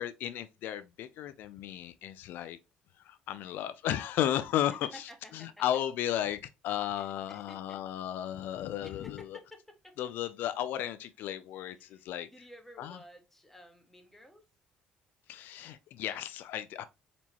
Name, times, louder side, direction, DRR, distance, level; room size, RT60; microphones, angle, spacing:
voice 1, 0.0-2.6 3.1-5.0 5.3-9.2 10.0-12.3 12.8-13.0 15.3-16.8, left 11 dB, 70° left, 0.4 m, -34 dB
voice 2, 4.7-5.6 6.9-7.8 8.8-10.0 11.7-14.4, left 1 dB, 5° left, 1.7 m, -53 dB
4.3 x 4.2 x 2.9 m
supercardioid pair, 70°, 3 cm